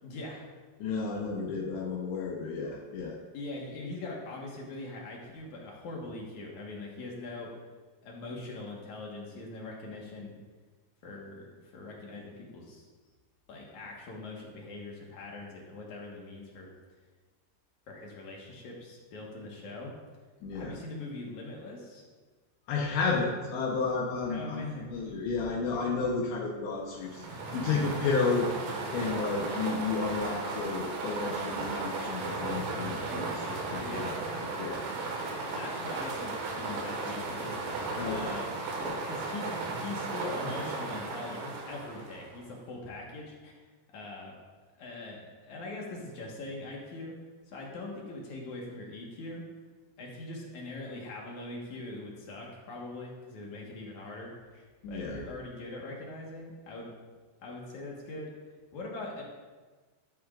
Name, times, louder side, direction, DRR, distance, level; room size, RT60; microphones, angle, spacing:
voice 1, 0.0-0.5 2.4-2.5 3.3-7.5 8.0-10.4 11.0-12.9 13.5-16.7 17.9-19.9 20.5-22.0 24.3-24.9 33.8-34.1 35.5-37.6 38.0-38.5 39.1-43.5 43.9-44.3 44.8-47.2 47.5-49.4 50.0-56.9 57.4-58.3 58.7-59.2, left 2 dB, 60° left, -2 dB, 2.2 m, -42 dB
voice 2, 0.8-3.2 20.4-20.8 22.7-28.5 28.9-34.2 34.6-34.9 38.0-38.3 38.7-39.0 54.8-55.2, left 4 dB, 80° left, -2 dB, 3.1 m, -32 dB
sound 1, 27.0-42.4, right 3 dB, 80° right, 3.9 m, -35 dB
12.5 x 12.0 x 2.5 m, 1.3 s
omnidirectional pair, 5.1 m